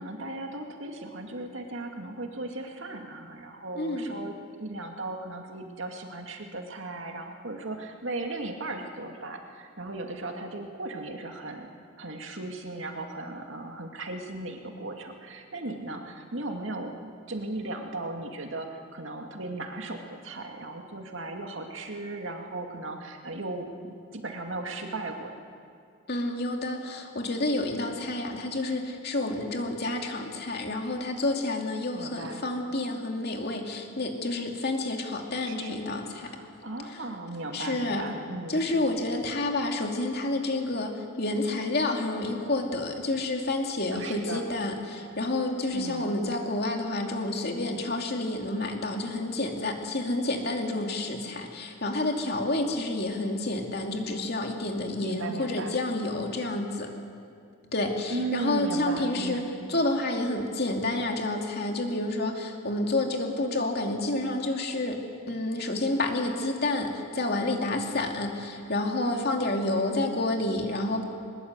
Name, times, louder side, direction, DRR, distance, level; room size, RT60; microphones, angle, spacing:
voice 1, 0.0-11.7 12.0-25.4 31.9-32.5 35.4-35.8 36.2-38.7 43.9-44.5 45.7-46.1 55.0-55.8 58.1-59.5, right 2 dB, 70° right, 3 dB, 2.3 m, -36 dB
voice 2, 3.7-4.1 26.1-36.4 36.9-37.0 37.5-38.1 38.5-56.9 57.7-59.4 59.7-65.0 65.3-71.0, left 2 dB, 50° left, 2 dB, 2.6 m, -29 dB
21.5 x 21.0 x 8.2 m, 2.3 s
head